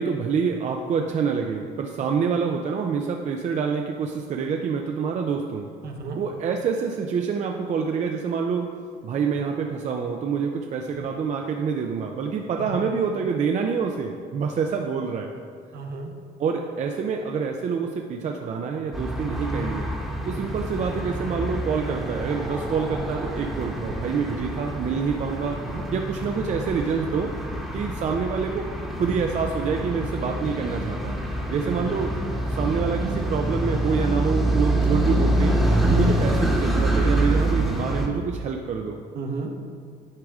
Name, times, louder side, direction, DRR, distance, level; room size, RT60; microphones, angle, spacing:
voice 1, 0.0-5.7 6.2-8.7 9.0-15.3 16.4-19.9 20.2-25.6 25.9-27.3 27.7-28.7 28.9-31.2 31.5-32.1 32.5-35.6 35.9-39.0, right 6 dB, 45° right, 3 dB, 0.5 m, -26 dB
voice 2, 5.8-6.2 12.6-12.9 15.7-16.1 25.7-25.8 31.7-31.9 35.8-36.1 39.1-39.5, right 4 dB, 65° right, 2 dB, 1.0 m, -32 dB
sound 1, 18.9-38.1, right 1 dB, ahead, 1.1 m, -26 dB
9.6 x 4.8 x 3.6 m, 2.3 s
cardioid pair, 110°, 17 cm